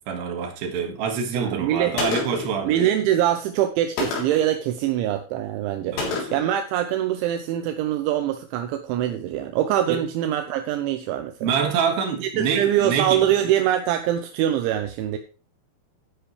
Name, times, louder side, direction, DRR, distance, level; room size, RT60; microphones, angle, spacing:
voice 1, 0.0-2.8 5.9-6.3 9.9-10.0 11.4-13.3, right 6 dB, 60° right, 3 dB, 3.7 m, -26 dB
voice 2, 1.3-2.0 2.6-6.0 6.3-11.5 12.2-15.2, right 11 dB, 80° right, 6 dB, 3.0 m, -23 dB
Gunshot gunfire, 2.0-2.6 4.0-4.5 6.0-6.5, left 4 dB, 80° left, 6.1 m, -28 dB
13.0 x 10.0 x 3.3 m, 0.36 s
omnidirectional pair, 5.7 m